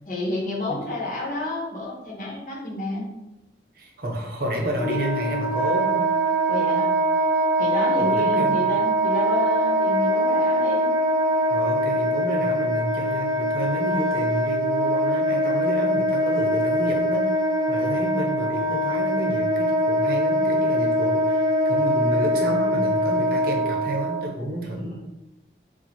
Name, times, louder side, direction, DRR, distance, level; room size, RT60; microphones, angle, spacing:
voice 1, 0.1-3.1 6.5-6.9 7.6-10.9 24.7-25.0, left 2 dB, 45° left, -3 dB, 1.2 m, -30 dB
voice 2, 3.7-6.1 8.0-8.8 11.5-25.0, equal, 55° right, 0 dB, 0.9 m, -30 dB
Wind instrument woodwind instrument, 4.7-24.2, right 1 dB, 15° right, 0.7 m, -22 dB
4.3 x 2.5 x 4.3 m, 0.93 s
head